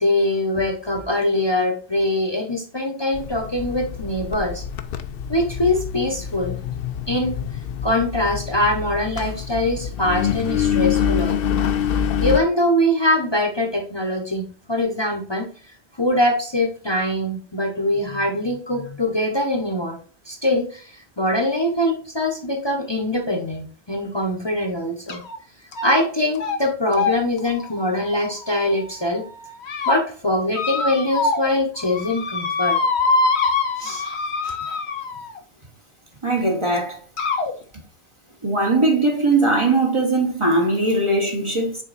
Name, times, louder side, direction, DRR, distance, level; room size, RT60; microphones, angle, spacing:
voice 1, 0.0-4.6 5.3-6.6 7.1-7.4 7.8-11.6 12.2-15.5 16.0-20.0 20.3-20.9 21.2-25.2 25.8-29.2 29.9-32.8 33.8-34.0 34.4-34.5, left 1 dB, 25° left, 0.9 m, -23 dB
Engine, 3.1-12.4, left 8 dB, 65° left, 0.8 m, -26 dB
sound 1, 25.1-25.4 25.7-26.1 26.4-26.6 26.9-28.9 29.4-30.0 30.5-31.5 31.8-35.4 36.4-36.5 37.2-37.5, left 4 dB, 90° left, 1.2 m, -24 dB
voice 2, 36.2-37.0 38.4-41.8, right 2 dB, 30° right, 1.1 m, -20 dB
6.4 x 4.1 x 4.1 m
omnidirectional pair, 1.1 m